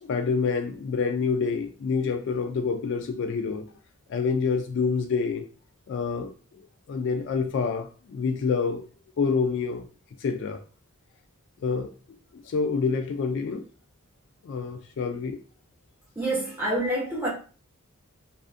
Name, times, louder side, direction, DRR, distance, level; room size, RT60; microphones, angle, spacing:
voice 1, 0.0-3.7 4.1-5.5 5.9-6.3 6.9-8.9 9.2-9.9 10.2-10.6 11.6-11.9 12.4-13.6 14.4-15.4, left 5 dB, 60° left, 0.3 m, -27 dB
voice 2, 16.1-17.3, right 1 dB, 10° right, 1.0 m, -27 dB
2.5 x 2.4 x 2.4 m
head